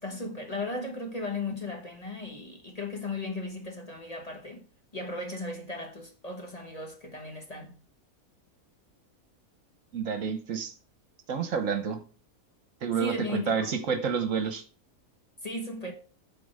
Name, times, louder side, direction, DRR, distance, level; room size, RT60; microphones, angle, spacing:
voice 1, 0.0-4.7 4.9-7.7 13.0-13.7 15.4-15.9, left 2 dB, 30° left, 1.2 m, -36 dB
voice 2, 9.9-10.7 11.3-12.0 12.8-14.6, right 6 dB, 65° right, 1.3 m, -29 dB
8.4 x 4.4 x 5.3 m
omnidirectional pair, 1.5 m